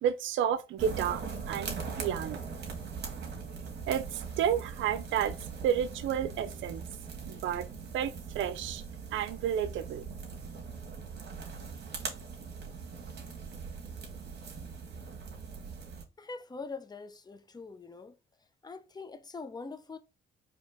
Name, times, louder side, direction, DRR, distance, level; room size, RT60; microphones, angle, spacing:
voice 1, 0.0-2.4 3.9-5.4 5.6-6.8 7.3-7.7 7.9-8.8 9.1-10.0, right 9 dB, 75° right, 0.6 m, -31 dB
sound 1, 0.8-16.0, right 5 dB, 60° right, 1.5 m, -41 dB
voice 2, 16.2-18.1 18.6-20.0, left 4 dB, 20° left, 0.6 m, -43 dB
4.3 x 2.9 x 3.4 m
cardioid pair, 90°, 20 cm